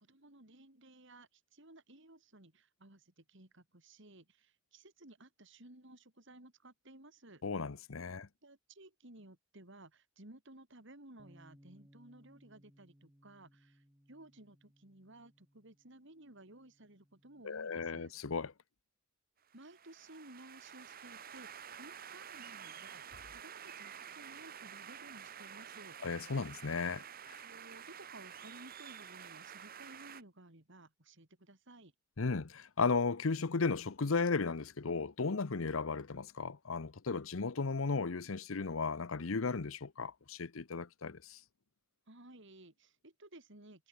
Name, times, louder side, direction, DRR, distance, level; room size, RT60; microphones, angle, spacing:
voice 1, 0.0-7.4 8.4-18.1 19.5-26.0 27.4-31.9 42.1-43.9, right 1 dB, 60° right, 3.6 m, -57 dB
voice 2, 7.4-8.3 17.4-18.5 26.0-27.4 32.2-41.4, left 4 dB, 75° left, 0.8 m, -35 dB
Bass guitar, 11.2-17.4, equal, 10° right, 2.8 m, -65 dB
sound 1, 19.5-30.2, right 8 dB, 45° right, 1.2 m, -50 dB
head